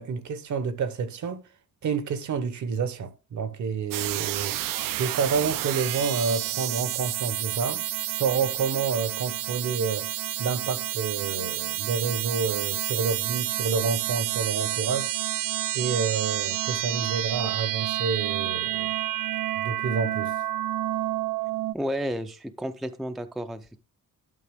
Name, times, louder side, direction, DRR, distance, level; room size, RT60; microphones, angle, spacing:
voice 1, 0.0-1.4 1.8-10.1 10.4-15.1 15.7-18.9 19.6-20.3, right 5 dB, 60° right, 0.9 m, -29 dB
sound 1, 3.9-21.7, right 14 dB, 80° right, 0.5 m, -29 dB
voice 2, 21.7-23.7, equal, ahead, 0.4 m, -31 dB
11.0 x 5.7 x 3.4 m
wide cardioid pair, 170°, 33 cm